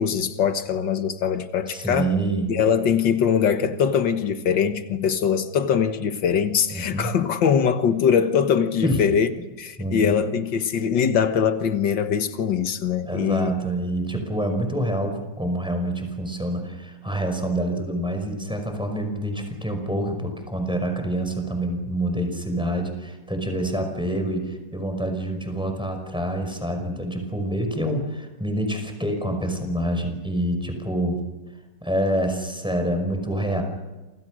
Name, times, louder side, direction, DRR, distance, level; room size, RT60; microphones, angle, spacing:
voice 1, 0.0-2.1 2.5-9.3 9.6-13.5, left 7 dB, 90° left, 2.0 m, -22 dB
voice 2, 1.7-2.5 6.7-7.1 8.8-9.0 9.8-10.2 13.1-31.2 31.8-33.6, right 1 dB, 5° right, 5.4 m, -27 dB
28.5 x 27.5 x 6.4 m
omnidirectional pair, 1.9 m